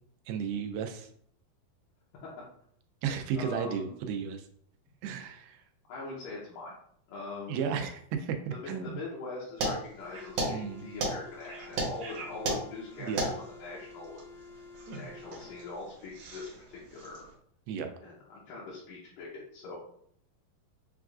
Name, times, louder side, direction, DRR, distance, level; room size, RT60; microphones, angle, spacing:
voice 1, 0.3-1.1 3.0-4.5 5.0-5.6 7.5-9.0 10.5-10.9 13.0-13.3 17.7-17.9, right 7 dB, 90° right, 6 dB, 2.4 m, -34 dB
voice 2, 3.3-4.2 5.9-6.8 7.1-7.7 8.5-14.2 14.9-17.2 18.0-19.8, left 3 dB, 75° left, -6 dB, 2.3 m, -42 dB
sound 1, 9.6-17.3, right 2 dB, 70° right, 1.6 m, -36 dB
sound 2, 10.0-15.8, left 4 dB, 90° left, 2.8 m, -50 dB
6.8 x 2.4 x 2.4 m, 0.65 s
omnidirectional pair, 4.2 m